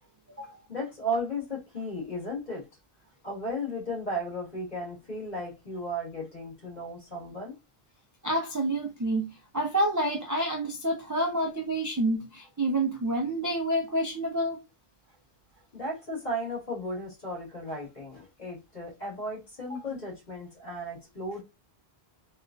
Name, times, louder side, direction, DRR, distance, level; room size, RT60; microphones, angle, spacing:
voice 1, 0.7-2.6 3.2-7.5 15.7-21.4, equal, 45° left, 1.8 m, -35 dB
voice 2, 8.2-14.6 19.9-20.0, right 1 dB, 25° right, 0.4 m, -28 dB
3.4 x 2.3 x 2.5 m
omnidirectional pair, 1.1 m